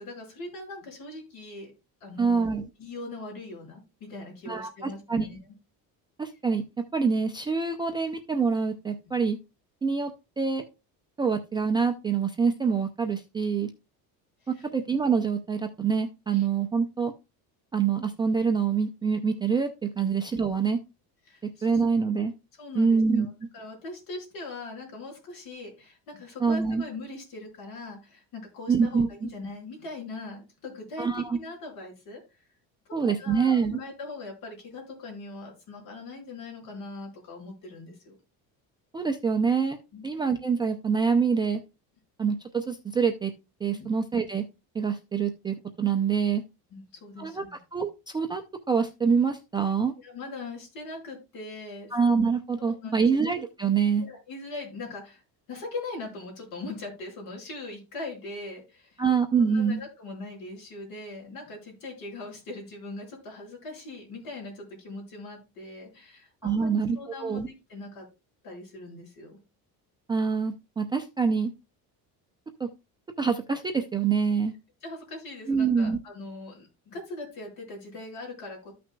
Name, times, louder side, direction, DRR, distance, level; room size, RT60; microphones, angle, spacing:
voice 1, 0.0-1.7 2.0-2.5 2.8-5.4 9.1-9.2 14.4-14.7 16.3-16.5 20.0-20.1 21.3-21.7 22.6-32.4 32.8-38.2 39.9-40.0 43.7-43.9 46.7-47.5 50.0-51.9 52.6-53.1 54.0-55.2 55.5-59.0 59.4-68.1 68.4-69.4 74.8-78.7, left 2 dB, 55° left, -1 dB, 4.8 m, -41 dB
voice 2, 2.2-2.6 4.5-5.3 6.2-6.6 6.9-9.4 9.8-10.1 10.4-10.7 11.2-13.7 14.5-17.1 17.7-20.8 21.6-22.3 22.7-23.3 26.4-26.8 28.7-29.3 31.0-31.4 32.9-33.8 38.9-39.8 40.0-41.6 42.2-43.3 43.6-44.4 44.7-46.4 47.2-47.4 47.7-49.9 51.9-54.1 59.0-59.8 66.4-67.5 70.1-71.5 72.6-72.7 73.2-74.5 75.5-76.0, right 5 dB, 10° right, 4 dB, 0.4 m, -25 dB
14.0 x 5.9 x 2.2 m, 0.27 s
cardioid pair, 170°, 38 cm